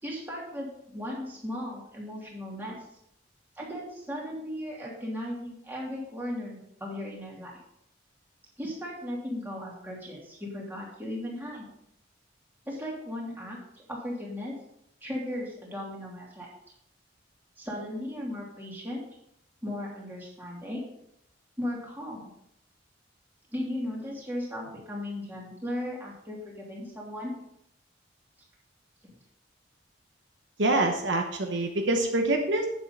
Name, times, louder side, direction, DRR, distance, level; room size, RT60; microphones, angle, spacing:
voice 1, 0.0-2.8 3.5-7.5 8.6-11.7 12.7-14.5 15.0-16.5 17.6-19.0 19.6-20.8 21.6-22.3 23.5-27.3, left 1 dB, 10° right, -4 dB, 2.9 m, -36 dB
voice 2, 30.6-32.7, right 2 dB, 70° right, 3 dB, 1.0 m, -25 dB
9.2 x 7.7 x 4.1 m, 0.75 s
head